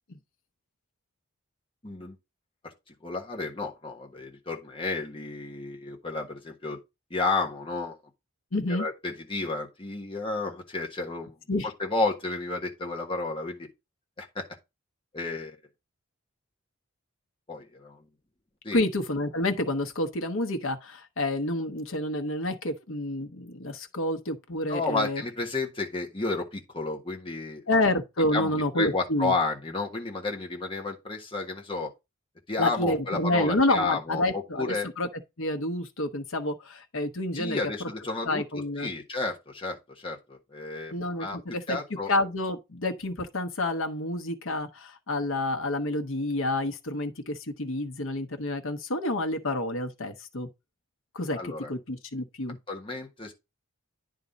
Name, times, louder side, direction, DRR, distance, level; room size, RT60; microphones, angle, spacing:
voice 1, 1.8-2.2 2.6-6.8 7.1-8.0 8.7-11.3 11.8-13.7 14.2-14.5 15.1-15.6 17.5-18.0 18.6-18.8 24.7-27.6 28.3-31.9 32.5-34.9 37.3-41.4 41.7-42.1 51.3-51.7 52.7-53.3, left 3 dB, 25° left, 1.3 m, -32 dB
voice 2, 8.5-8.8 11.5-11.7 18.7-25.2 27.7-29.3 32.6-35.1 35.4-37.6 38.3-38.9 40.9-41.8 42.1-50.5 51.1-52.6, left 1 dB, 75° left, 1.1 m, -29 dB
9.6 x 3.8 x 4.0 m
head